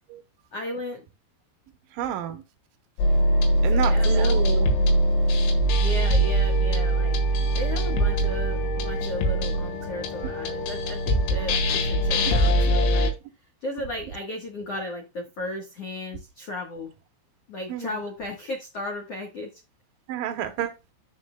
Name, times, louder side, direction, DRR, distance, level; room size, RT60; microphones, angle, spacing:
voice 1, 0.5-1.0 3.7-4.6 5.8-7.2 7.5-13.2 13.6-16.9 17.5-19.6, left 1 dB, 70° left, 1.4 m, -35 dB
voice 2, 1.9-2.4 3.6-4.7 17.7-18.0 20.1-20.7, right 11 dB, 85° right, 2.0 m, -29 dB
sound 1, 3.0-13.1, right 1 dB, 90° left, 4.0 m, -22 dB
14.0 x 5.6 x 2.3 m
omnidirectional pair, 5.3 m